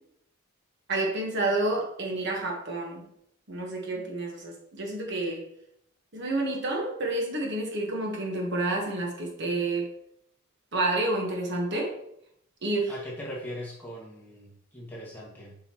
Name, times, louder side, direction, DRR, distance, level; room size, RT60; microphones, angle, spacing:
voice 1, 0.9-3.1 3.5-5.4 6.1-9.9 10.7-11.9 12.6-12.9, right 2 dB, 55° right, 0 dB, 1.3 m, -29 dB
voice 2, 12.9-15.6, equal, 10° left, -5 dB, 1.8 m, -40 dB
7.2 x 5.5 x 3.0 m, 0.74 s
head